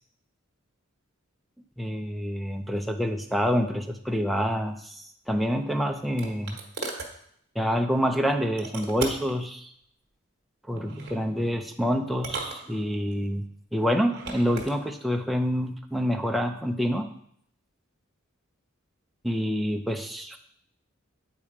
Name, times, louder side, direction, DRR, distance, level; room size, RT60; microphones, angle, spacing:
voice 1, 1.8-6.6 7.6-9.7 10.7-13.5 13.7-17.1 19.2-20.4, equal, ahead, 3 dB, 0.5 m, -27 dB
sound 1, 5.4-7.1 8.6-9.4 10.8-11.2 12.1-13.2 14.0-14.7, right 3 dB, 50° right, 1.4 m, -37 dB
8.8 x 4.3 x 4.9 m, 0.66 s
head